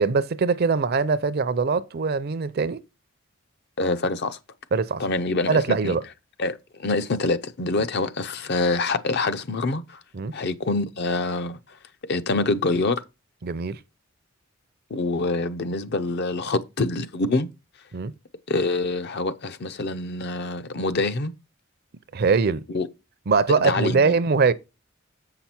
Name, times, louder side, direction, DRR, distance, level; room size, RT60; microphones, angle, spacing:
voice 1, 0.0-2.8 4.7-5.0 5.5-6.0 10.1-10.3 13.4-13.8 17.9-18.1 22.1-22.6 23.3-24.5, right 4 dB, 50° right, 0.5 m, -22 dB
voice 2, 3.8-4.4 5.0-6.0 6.4-10.0 10.3-11.8 12.1-13.0 14.9-17.5 18.5-21.3 22.7-22.9 23.6-24.1, left 3 dB, 50° left, 0.6 m, -25 dB
7.4 x 5.9 x 4.3 m
head